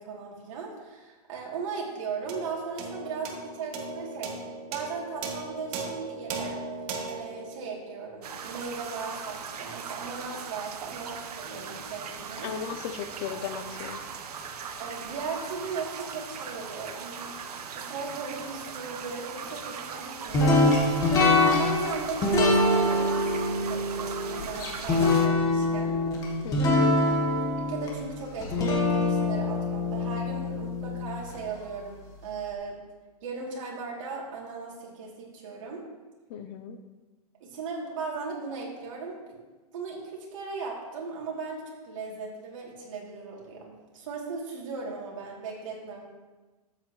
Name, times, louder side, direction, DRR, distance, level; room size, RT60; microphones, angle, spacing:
voice 1, 0.0-4.4 4.7-6.6 7.1-12.5 14.8-17.3 17.7-20.7 21.6-26.0 27.6-32.8 33.2-35.8 37.4-39.4 39.7-46.1, right 4 dB, 55° right, -3 dB, 3.0 m, -37 dB
sound 1, 2.3-8.9, right 4 dB, 30° right, 1.1 m, -38 dB
sound 2, 8.2-25.3, right 6 dB, 80° right, 1.1 m, -39 dB
voice 2, 12.4-14.0 26.4-27.0 36.3-36.8, left 8 dB, 35° left, 9 dB, 0.7 m, -36 dB
sound 3, 20.3-31.4, left 2 dB, 20° left, 1.7 m, -24 dB
13.0 x 8.6 x 3.2 m, 1.2 s
hypercardioid pair, 160°, 20 cm